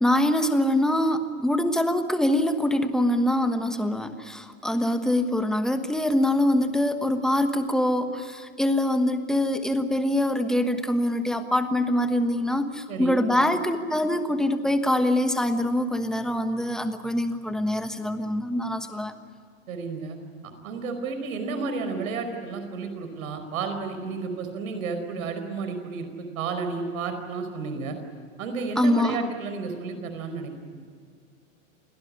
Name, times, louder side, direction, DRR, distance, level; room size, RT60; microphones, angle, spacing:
voice 1, 0.0-19.1 28.8-29.2, left 1 dB, ahead, 7 dB, 1.2 m, -24 dB
voice 2, 12.9-13.2 19.7-20.2 20.6-28.0 28.4-30.8, right 4 dB, 75° right, 7 dB, 5.0 m, -32 dB
28.0 x 18.0 x 9.8 m, 2.1 s
supercardioid pair, 150°, 41 cm